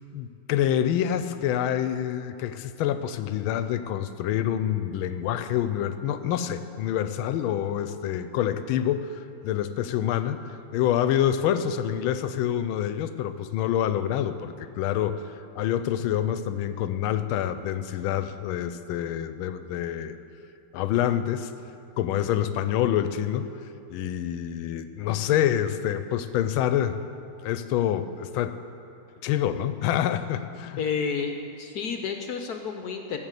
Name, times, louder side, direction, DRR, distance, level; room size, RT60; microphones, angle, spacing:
voice 1, 0.1-20.2 20.7-21.5 22.0-23.5 23.9-27.0 27.4-28.6 29.2-30.8, left 10 dB, 85° left, 11 dB, 1.4 m, -27 dB
voice 2, 30.8-33.2, left 6 dB, 65° left, 5 dB, 1.0 m, -30 dB
14.5 x 6.5 x 8.2 m, 2.6 s
omnidirectional pair, 2.2 m